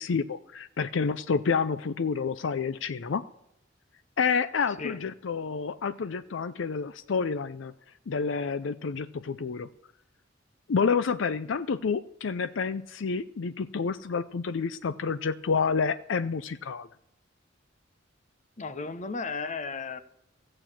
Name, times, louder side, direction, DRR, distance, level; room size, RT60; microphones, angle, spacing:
voice 1, 0.0-3.2 4.2-7.7 8.1-9.7 10.7-16.9, left 5 dB, 70° left, 0.5 m, -29 dB
voice 2, 18.6-20.0, left 4 dB, 40° left, 0.9 m, -34 dB
14.5 x 8.9 x 7.3 m
head